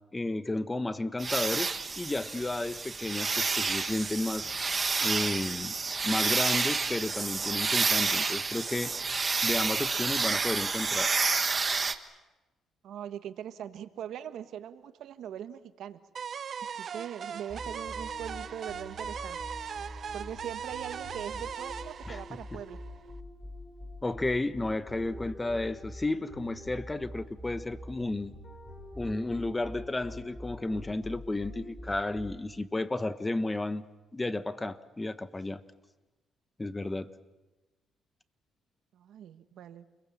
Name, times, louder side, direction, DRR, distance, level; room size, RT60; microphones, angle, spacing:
voice 1, 0.1-1.7 2.0-4.6 5.0-5.7 6.0-8.9 9.4-11.1 22.1-22.2 24.0-28.3 28.9-33.8 34.1-35.6 36.6-37.1, left 2 dB, 15° left, 13 dB, 1.3 m, -32 dB
sound 1, 1.2-11.9, right 4 dB, 30° right, 1.5 m, -29 dB
voice 2, 12.8-16.0 16.6-19.4 20.1-22.8 38.9-39.8, right 10 dB, 75° right, 11 dB, 1.3 m, -41 dB
sound 2, 16.2-23.1, right 7 dB, 55° right, 0.8 m, -39 dB
sound 3, 17.5-32.6, left 1 dB, 35° left, 7.1 m, -45 dB
29.5 x 22.0 x 7.3 m, 1.1 s
cardioid pair, 90°, 0 cm